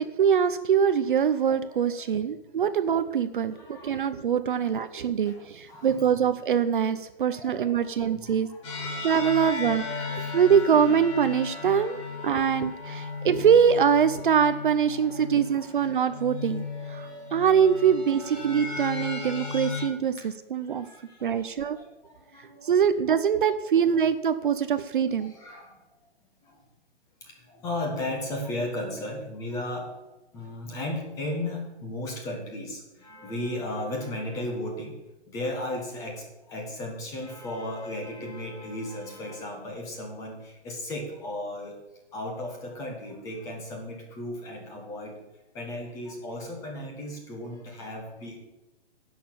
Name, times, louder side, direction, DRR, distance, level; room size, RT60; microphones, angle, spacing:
voice 1, 0.0-8.5 9.0-12.0 12.2-20.9 21.2-21.8 22.6-25.3, right 7 dB, 50° right, 11 dB, 0.7 m, -23 dB
voice 2, 1.6-2.5 3.5-4.1 4.6-4.7 5.2-6.1 7.3-9.5 10.1-10.4 10.7-10.8 11.5-12.4 13.0-13.2 14.9-15.7 17.0-17.3 18.7-18.8 19.6-19.8 20.2-20.3 20.6-22.8 25.2-25.8 26.4-26.6 27.2-35.0 35.3-41.8 42.1-45.2 45.5-48.4, left 1 dB, 10° left, 1 dB, 1.5 m, -36 dB
sound 1, 8.6-19.9, left 4 dB, 30° left, 2.6 m, -36 dB
11.0 x 6.6 x 8.6 m, 1.1 s
hypercardioid pair, 175°, 32 cm